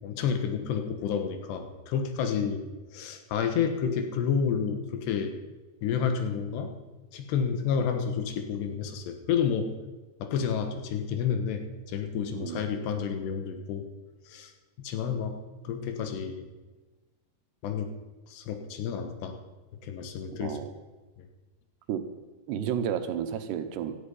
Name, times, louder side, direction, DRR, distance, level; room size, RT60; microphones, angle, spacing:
voice 1, 0.0-2.6 2.9-5.3 5.8-6.7 7.1-9.7 10.2-13.9 14.3-14.5 14.8-15.4 15.7-16.5 17.6-17.9 18.3-19.4 19.8-20.6 21.2-21.3, left 7 dB, 85° left, 6 dB, 3.6 m, -30 dB
voice 2, 12.3-12.6 20.4-20.7 21.9-22.0 22.5-24.0, right 9 dB, 85° right, 9 dB, 3.2 m, -31 dB
16.5 x 13.0 x 5.6 m, 1.2 s
omnidirectional pair, 4.7 m